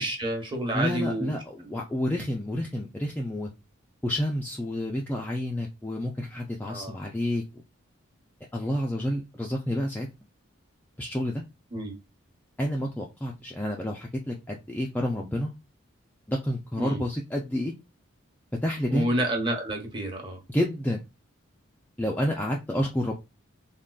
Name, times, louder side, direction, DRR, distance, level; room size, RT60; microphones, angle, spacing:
voice 1, 0.0-1.3 6.7-7.0 11.7-11.9 16.8-17.0 18.9-20.4, right 1 dB, 20° right, 1 dB, 0.9 m, -29 dB
voice 2, 0.7-3.5 4.0-7.4 8.5-10.1 11.0-11.4 12.6-15.6 16.3-17.7 18.6-19.1 20.5-21.0 22.0-23.1, left 1 dB, 10° left, -1 dB, 0.3 m, -29 dB
3.6 x 2.3 x 2.2 m, 0.24 s
head